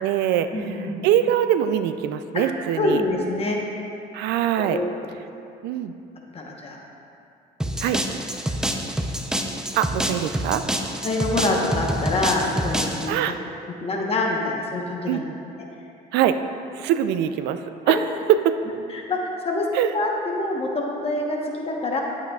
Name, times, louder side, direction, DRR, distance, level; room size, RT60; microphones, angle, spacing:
voice 1, 0.0-3.0 4.1-4.8 5.6-5.9 7.8-8.0 9.7-10.6 13.1-13.4 15.1-15.2 16.1-16.4 16.7-18.0 18.4-18.6 19.7-19.9, right 10 dB, 85° right, 10 dB, 0.4 m, -23 dB
voice 2, 0.5-1.0 2.3-2.4 2.8-3.6 4.6-4.9 6.3-6.8 7.8-7.9 11.0-13.2 13.8-15.2 18.9-19.7 19.9-22.0, left 2 dB, 35° left, -1 dB, 1.1 m, -25 dB
sound 1, 7.6-13.1, right 1 dB, 5° right, 0.5 m, -27 dB
11.5 x 8.2 x 2.4 m, 2.6 s
cardioid pair, 110°, 17 cm